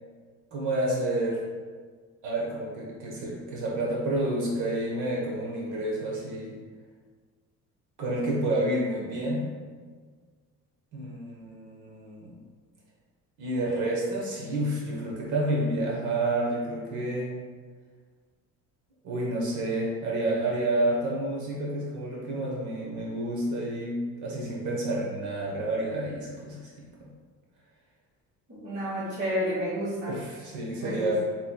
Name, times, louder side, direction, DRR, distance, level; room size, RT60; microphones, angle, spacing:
voice 1, 0.5-1.4 2.2-6.6 8.0-9.5 10.9-12.3 13.4-17.3 19.0-26.9 30.1-31.3, right 1 dB, 65° right, -3 dB, 1.1 m, -29 dB
voice 2, 28.5-30.1 30.8-31.3, equal, 35° right, -9 dB, 1.2 m, -31 dB
6.8 x 3.2 x 2.3 m, 1.5 s
cardioid pair, 125°, 32 cm